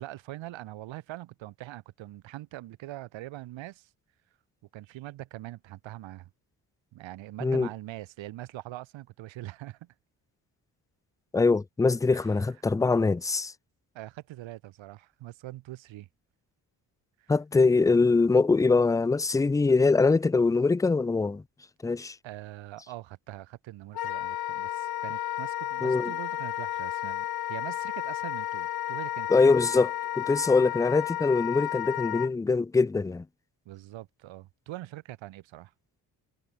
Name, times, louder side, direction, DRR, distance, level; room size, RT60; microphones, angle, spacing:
voice 1, 0.0-3.9 4.7-6.3 6.9-9.9 12.1-12.5 13.9-16.1 17.2-17.3 22.2-29.6 33.7-35.7, right 16 dB, 85° right, 5.9 m, -43 dB
voice 2, 11.3-13.5 17.3-21.4 21.8-22.2 25.8-26.1 29.3-33.2, left 4 dB, 10° left, 0.3 m, -23 dB
Wind instrument woodwind instrument, 23.9-32.3, left 13 dB, 55° left, 0.7 m, -32 dB
supercardioid pair, 50°, 44 cm